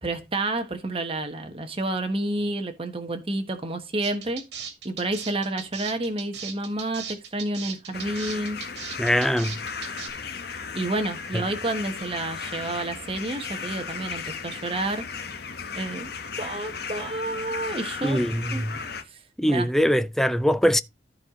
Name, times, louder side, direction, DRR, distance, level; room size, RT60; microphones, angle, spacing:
voice 1, 0.0-4.4 4.8-8.6 10.7-15.1 15.7-16.1 16.4-18.6 19.1-19.2 19.5-19.7, right 2 dB, 35° right, 1.4 m, -30 dB
sound 1, 4.0-10.1, right 7 dB, 70° right, 2.4 m, -37 dB
sound 2, 7.9-19.0, left 5 dB, 65° left, 1.4 m, -36 dB
voice 2, 9.0-9.6 18.0-18.7 19.4-20.8, equal, ahead, 0.5 m, -22 dB
14.0 x 4.8 x 3.8 m
head